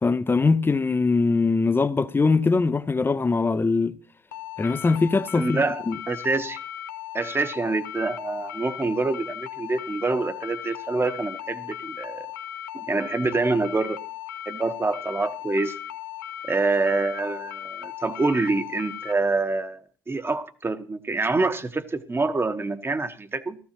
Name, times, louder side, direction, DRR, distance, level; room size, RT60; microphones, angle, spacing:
voice 1, 0.0-3.9 4.6-6.0, left 4 dB, 20° left, 0.7 m, -22 dB
sound 1, 4.3-19.1, left 11 dB, 90° left, 0.7 m, -37 dB
voice 2, 5.3-6.6 7.1-12.3 12.7-14.0 14.5-15.8 16.4-23.6, right 3 dB, 25° right, 1.1 m, -26 dB
15.0 x 13.5 x 3.0 m
hypercardioid pair, 60°, 10 cm